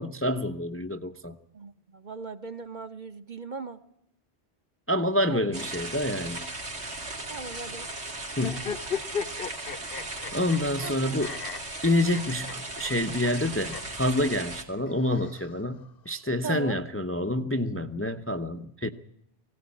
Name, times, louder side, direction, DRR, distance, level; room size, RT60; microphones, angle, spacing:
voice 1, 0.0-1.3 4.9-6.5 8.4-8.7 10.3-11.3 11.8-18.9, left 1 dB, 15° left, 0.7 m, -28 dB
voice 2, 1.5-3.8 5.3-5.5 7.3-7.9 10.8-11.2 16.4-16.8, right 4 dB, 45° right, 1.2 m, -38 dB
sound 1, 5.5-14.6, right 2 dB, 90° right, 3.1 m, -37 dB
sound 2, 8.4-10.9 11.2-12.5 12.8-12.9 13.2-13.3 13.7-13.8 14.9-15.9, left 6 dB, 60° left, 1.2 m, -35 dB
20.0 x 16.5 x 8.4 m
omnidirectional pair, 1.1 m